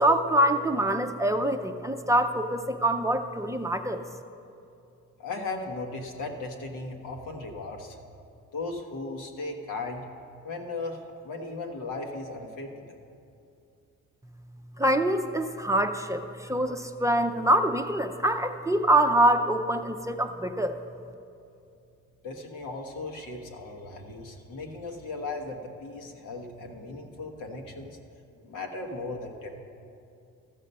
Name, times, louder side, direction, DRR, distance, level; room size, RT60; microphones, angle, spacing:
voice 1, 0.0-4.0 14.8-20.8, right 1 dB, 10° right, 6 dB, 0.5 m, -25 dB
voice 2, 5.2-8.0 8.5-10.0 10.4-12.9 22.2-28.0 28.4-29.7, left 3 dB, 90° left, 2 dB, 1.3 m, -37 dB
14.0 x 6.5 x 5.4 m, 2.6 s
cardioid pair, 90°, 30 cm